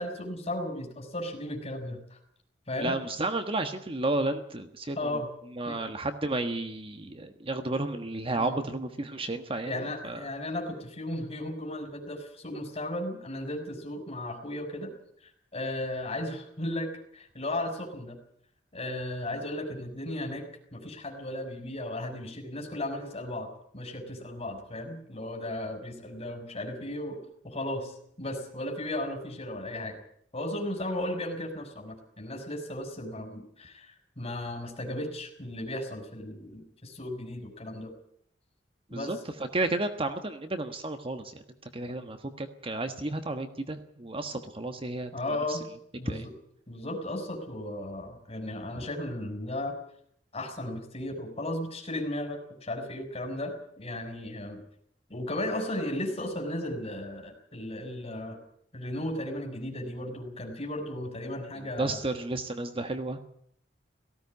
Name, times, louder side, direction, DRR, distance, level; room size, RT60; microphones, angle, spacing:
voice 1, 0.0-2.2 2.7-3.0 5.0-5.3 5.7-5.8 8.4-8.6 9.6-14.9 15.2-18.2 18.7-20.5 20.7-23.5 23.7-30.0 30.3-37.9 38.9-39.1 45.1-45.6 46.0-46.3 46.7-49.7 50.3-54.6 55.1-58.4 58.7-62.0, left 1 dB, 35° left, 4 dB, 5.8 m, -35 dB
voice 2, 2.8-5.0 5.6-9.7 10.0-10.2 38.9-39.2 39.5-41.4 41.7-45.1 45.5-45.6 46.0-46.2 48.7-48.8 61.5-63.2, right 2 dB, 30° right, 8 dB, 1.4 m, -32 dB
18.0 x 16.5 x 9.6 m, 0.67 s
head